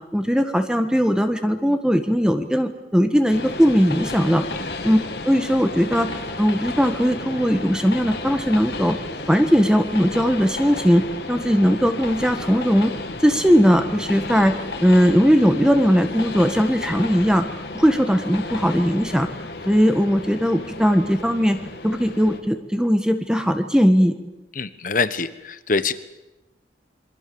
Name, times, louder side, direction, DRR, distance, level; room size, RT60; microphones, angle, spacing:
voice 1, 0.1-4.4 4.8-5.0 5.2-6.1 6.4-9.0 9.3-11.0 11.3-12.9 13.2-14.5 14.8-17.4 17.7-19.3 19.7-21.6 21.8-24.1, equal, 5° right, 7 dB, 1.5 m, -19 dB
Train, 3.3-22.4, left 2 dB, 65° left, 2.5 m, -33 dB
voice 2, 24.5-25.9, left 4 dB, 45° left, 13 dB, 1.3 m, -24 dB
28.0 x 23.5 x 7.1 m, 0.97 s
head